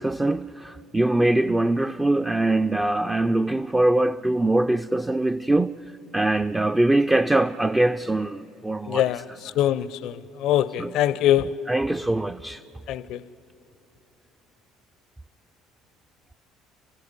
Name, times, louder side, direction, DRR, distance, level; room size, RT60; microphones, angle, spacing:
voice 1, 0.0-5.8 6.1-9.4 10.8-11.0 11.4-12.6, right 2 dB, 15° right, 0.5 m, -23 dB
voice 2, 8.9-9.2 9.6-11.5 12.9-13.2, left 12 dB, 70° left, 0.6 m, -23 dB
27.5 x 15.0 x 9.6 m
supercardioid pair, 75°, 0 cm